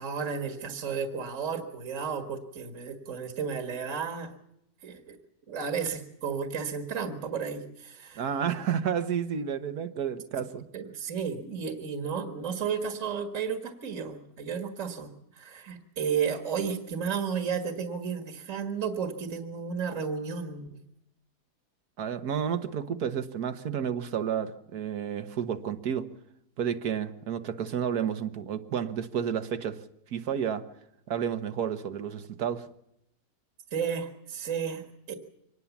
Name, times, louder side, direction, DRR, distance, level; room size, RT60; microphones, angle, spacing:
voice 1, 0.0-4.3 4.8-5.2 5.5-8.3 10.7-20.8 33.7-35.1, right 6 dB, 50° right, 5 dB, 2.1 m, -33 dB
voice 2, 8.2-10.7 22.0-26.1 26.6-29.8 30.1-30.6 31.1-32.7, right 8 dB, 70° right, 10 dB, 1.7 m, -31 dB
24.5 x 19.5 x 7.2 m, 0.81 s
omnidirectional pair, 1.7 m